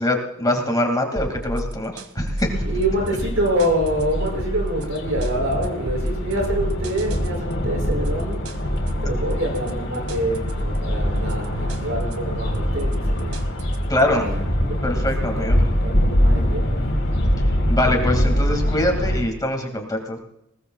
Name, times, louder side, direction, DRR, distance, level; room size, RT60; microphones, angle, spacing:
voice 1, 0.0-2.5 13.9-14.3 14.8-15.6 17.7-20.2, left 1 dB, 20° left, 3 dB, 2.3 m, -23 dB
sound 1, 1.2-14.0, equal, 85° right, 1.9 m, -29 dB
sound 2, 2.4-19.2, equal, 60° left, 4.0 m, -24 dB
voice 2, 2.6-13.5 14.1-14.8 15.2-16.8, right 1 dB, 65° right, 1 dB, 6.8 m, -26 dB
21.0 x 20.0 x 2.4 m, 0.83 s
head